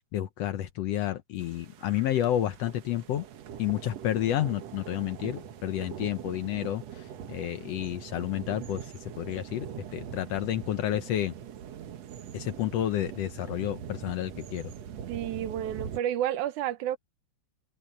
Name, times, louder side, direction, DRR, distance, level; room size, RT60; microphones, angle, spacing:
voice 1, 0.1-3.2 3.6-9.7 9.9-11.3 12.3-14.7, left 12 dB, 70° left, 1.6 m, -30 dB
sound 1, 1.4-16.0, right 8 dB, 65° right, 2.3 m, -42 dB
voice 2, 15.1-17.0, right 11 dB, 80° right, 2.3 m, -30 dB
omnidirectional pair, 3.5 m